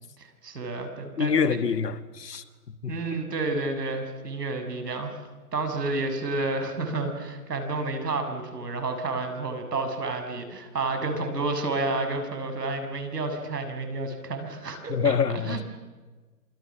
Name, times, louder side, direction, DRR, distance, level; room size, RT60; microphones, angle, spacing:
voice 1, 0.2-1.6 2.9-5.1 5.5-15.6, right 3 dB, 85° right, 7.0 m, -30 dB
voice 2, 1.2-3.0 14.9-15.6, left 6 dB, 85° left, 2.1 m, -26 dB
28.0 x 24.5 x 7.4 m
hypercardioid pair, 165°, 47 cm